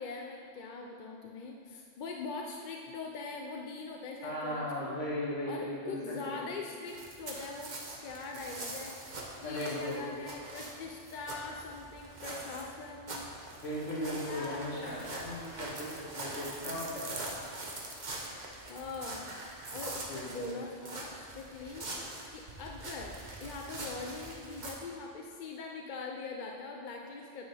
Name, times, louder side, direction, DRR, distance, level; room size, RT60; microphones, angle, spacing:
voice 1, 0.0-4.9 5.5-7.7 8.0-8.9 9.4-13.3 14.2-15.1 18.7-19.3 19.7-21.9 22.3-27.4, left 4 dB, 50° left, 1 dB, 0.6 m, -42 dB
voice 2, 4.2-6.5 9.4-10.0 13.6-17.2 20.1-20.6, left 1 dB, 75° left, -7 dB, 2.4 m, -37 dB
sound 1, 6.9-24.7, right 2 dB, 40° right, 1.1 m, -43 dB
9.5 x 9.0 x 3.4 m, 2.3 s
omnidirectional pair, 1.3 m